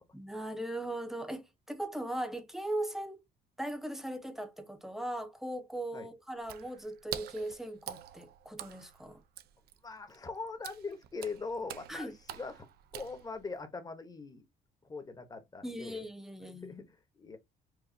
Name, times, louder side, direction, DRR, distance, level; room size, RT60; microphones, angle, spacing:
voice 1, 0.1-3.2 3.6-9.2 11.9-12.1 15.6-16.9, right 1 dB, ahead, 0.8 m, -39 dB
Water / Splash splatter, 6.4-13.6, right 11 dB, 70° right, 0.5 m, -46 dB
voice 2, 9.8-12.7 12.9-14.4 14.8-16.0 16.6-17.4, left 4 dB, 20° left, 1.0 m, -41 dB
4.8 x 2.6 x 2.7 m
cardioid pair, 110°, 17 cm